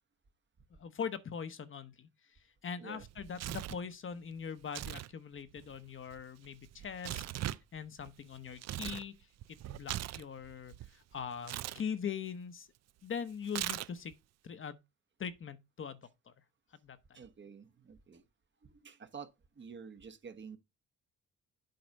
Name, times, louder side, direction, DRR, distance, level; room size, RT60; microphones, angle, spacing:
voice 1, 0.7-12.7 13.0-14.1 14.4-14.8 15.2-16.3 16.7-17.2, left 7 dB, 40° left, 0.9 m, -42 dB
Tearing, 3.0-3.9 4.6-5.1 5.4-9.1 9.4-10.9 11.4-11.8 13.5-14.1, right 13 dB, 60° right, 0.5 m, -40 dB
voice 2, 17.1-18.2 18.6-20.6, right 6 dB, 40° right, 1.1 m, -50 dB
7.8 x 4.2 x 5.3 m
cardioid pair, 90°, 30 cm